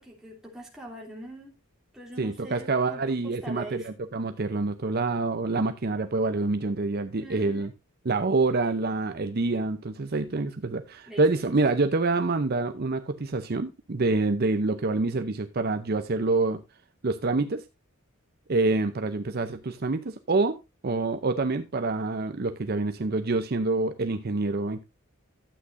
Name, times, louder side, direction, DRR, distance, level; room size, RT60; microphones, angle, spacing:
voice 1, 0.0-1.5 1.9-3.9 7.2-7.7 11.1-11.3, right 1 dB, ahead, 2.9 m, -43 dB
voice 2, 2.2-7.7 8.0-16.6 17.0-17.6 18.5-20.6 20.8-24.8, right 3 dB, 45° right, 0.6 m, -26 dB
12.5 x 8.3 x 2.6 m
head